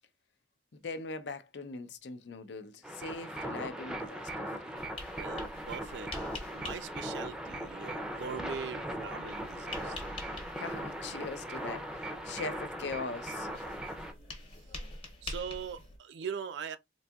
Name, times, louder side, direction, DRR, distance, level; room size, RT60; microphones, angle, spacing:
voice 1, 0.8-4.7 10.6-11.9 12.2-13.5, left 3 dB, 75° left, 0.5 m, -41 dB
sound 1, 2.8-14.1, right 1 dB, 5° right, 0.5 m, -39 dB
sound 2, 4.8-16.0, left 2 dB, 30° left, 0.9 m, -47 dB
voice 2, 5.1-6.1 6.5-10.1 15.2-16.8, right 7 dB, 75° right, 0.4 m, -41 dB
3.9 x 2.6 x 2.3 m
head